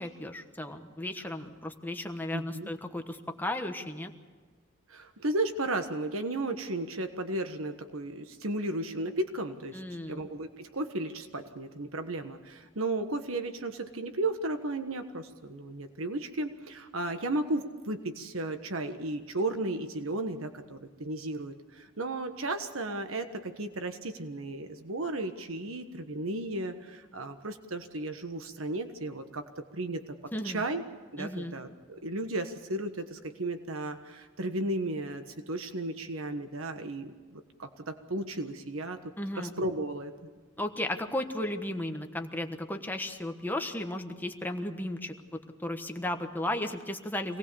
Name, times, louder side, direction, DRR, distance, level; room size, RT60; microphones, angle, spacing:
voice 1, 0.0-4.1 9.7-10.2 30.3-30.6 31.2-31.5 39.2-39.5 40.6-47.4, left 1 dB, 10° left, 5 dB, 1.2 m, -35 dB
voice 2, 2.3-2.7 4.9-9.8 10.1-30.1 30.4-30.8 31.1-39.0 39.4-40.1, right 2 dB, 90° right, 7 dB, 1.4 m, -34 dB
26.0 x 19.0 x 7.0 m, 1.4 s
head